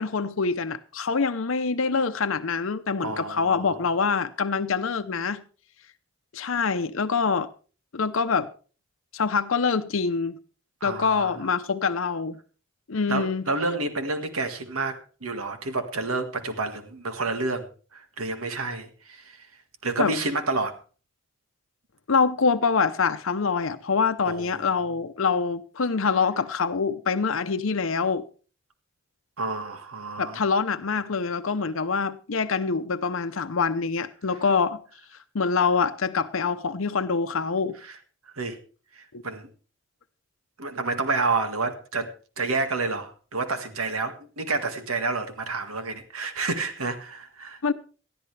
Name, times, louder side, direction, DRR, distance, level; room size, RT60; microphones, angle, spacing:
voice 1, 0.0-5.4 6.3-7.5 7.9-8.5 9.1-10.4 10.8-12.4 12.9-13.4 20.0-20.1 22.1-28.2 30.2-34.8 35.3-37.7 39.1-39.2 47.6-47.7, left 5 dB, 70° left, 0.7 m, -25 dB
voice 2, 3.0-3.8 10.8-11.3 13.1-19.4 19.8-20.8 24.2-24.5 29.4-30.4 37.8-37.9 38.3-38.6 39.0-39.5 40.6-47.6, right 3 dB, 90° right, 1.8 m, -29 dB
19.5 x 13.0 x 3.3 m
head